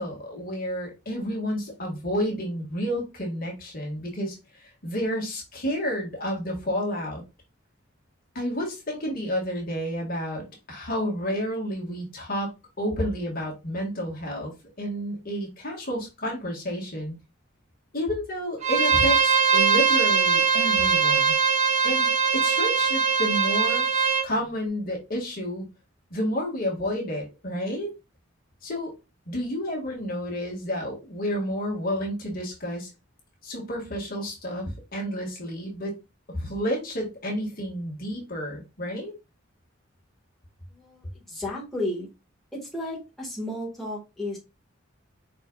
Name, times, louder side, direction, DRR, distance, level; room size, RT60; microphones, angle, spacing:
voice 1, 0.0-7.2 8.4-14.5 14.8-17.2 17.9-21.4 21.8-23.9 24.2-25.6 26.1-27.9 28.6-28.9 29.3-32.9 33.4-36.0 36.3-39.1, equal, 50° left, 1.8 m, -30 dB
Bowed string instrument, 18.6-24.3, right 6 dB, 35° right, 0.9 m, -21 dB
voice 2, 40.7-42.1 42.7-44.4, left 1 dB, ahead, 1.6 m, -33 dB
5.0 x 4.3 x 2.3 m
head